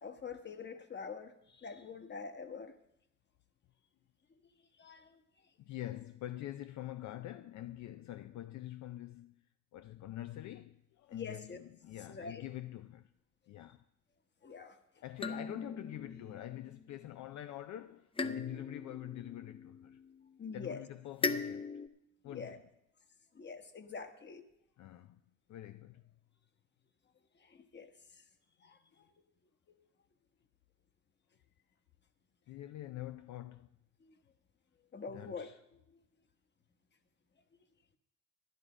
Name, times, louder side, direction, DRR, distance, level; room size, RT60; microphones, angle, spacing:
voice 1, 0.0-2.7 4.8-5.2 11.1-11.6 12.1-12.4 14.4-14.8 20.4-20.8 22.2-22.6 23.3-24.4 27.4-27.9 28.6-29.0 34.9-35.5, left 5 dB, 35° left, 1.2 m, -45 dB
voice 2, 5.6-9.4 9.7-13.1 13.5-13.8 15.0-20.0 20.5-21.7 22.2-22.6 24.8-25.2 25.5-26.0 32.5-33.8 35.1-35.6, left 14 dB, 70° left, 0.5 m, -45 dB
sound 1, 15.2-16.8 18.2-20.3 21.2-21.9, left 4 dB, 20° left, 0.6 m, -39 dB
12.0 x 11.0 x 5.0 m
cardioid pair, 90°, 30 cm